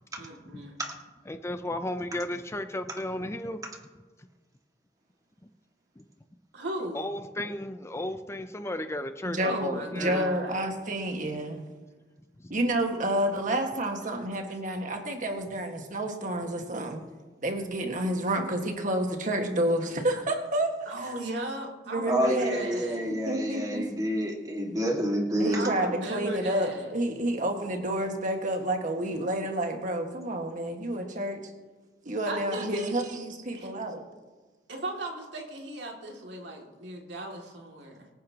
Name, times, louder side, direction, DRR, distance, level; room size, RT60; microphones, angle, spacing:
voice 1, 0.2-0.8 6.5-7.0 9.4-10.5 20.9-23.1 25.5-26.9 32.3-33.0 33.5-33.7 34.7-38.1, right 1 dB, 85° right, 0 dB, 2.5 m, -37 dB
voice 2, 1.3-3.6 6.0-6.1 6.9-10.3 12.4-12.5, left 1 dB, 15° left, 9 dB, 0.5 m, -34 dB
voice 3, 9.2-11.6 12.5-17.0 17.4-20.9 21.9-22.6 23.0-23.9 25.4-31.4 32.0-34.0, right 1 dB, 45° right, 3 dB, 1.7 m, -29 dB
voice 4, 22.1-25.7, equal, 20° right, 1 dB, 1.9 m, -28 dB
24.5 x 10.0 x 2.9 m, 1.3 s
head